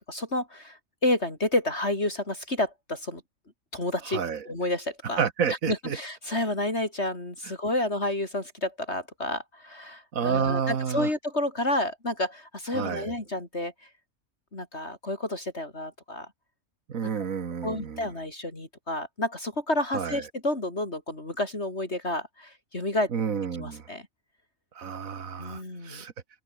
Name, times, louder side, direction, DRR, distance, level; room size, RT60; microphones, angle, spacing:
voice 1, 0.1-3.2 3.7-5.2 5.7-13.9 14.5-16.3 17.6-23.1 23.6-24.1 25.4-26.0, left 1 dB, 50° left, 5.4 m, -30 dB
voice 2, 4.1-4.4 5.2-6.0 10.1-11.1 12.7-13.1 16.9-18.1 19.9-20.2 23.1-23.9 24.8-26.1, right 7 dB, 70° right, 1.9 m, -29 dB
omnidirectional pair, 1.5 m